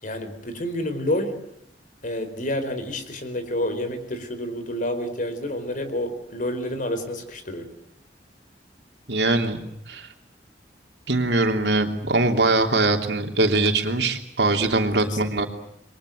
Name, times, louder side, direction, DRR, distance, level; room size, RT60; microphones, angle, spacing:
voice 1, 0.0-1.4 2.0-7.7 15.0-15.5, left 1 dB, 50° left, 9 dB, 4.5 m, -29 dB
voice 2, 9.1-9.6 9.9-10.1 11.1-15.5, right 2 dB, 70° right, 4 dB, 3.1 m, -22 dB
28.5 x 23.0 x 7.9 m, 0.76 s
head